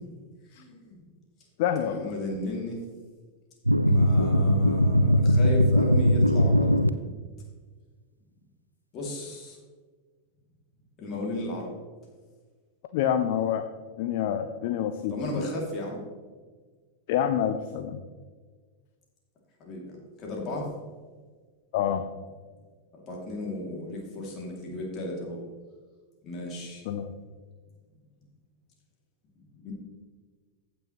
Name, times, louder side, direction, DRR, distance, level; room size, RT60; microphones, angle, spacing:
voice 1, 0.5-1.0 1.9-2.8 3.8-6.8 8.9-9.6 11.0-11.7 15.1-16.0 19.6-20.7 23.1-25.4 26.2-26.8 29.6-29.7, left 1 dB, 35° left, -2 dB, 2.8 m, -34 dB
voice 2, 1.6-2.1 12.9-13.6 14.0-15.1 17.1-18.0 21.7-22.0 26.9-27.1, left 9 dB, 50° left, 8 dB, 0.5 m, -27 dB
sound 1, 3.7-6.9, equal, 90° right, 0.3 m, -20 dB
15.0 x 6.1 x 3.2 m, 1.5 s
figure-of-eight pair, 90°, 0 cm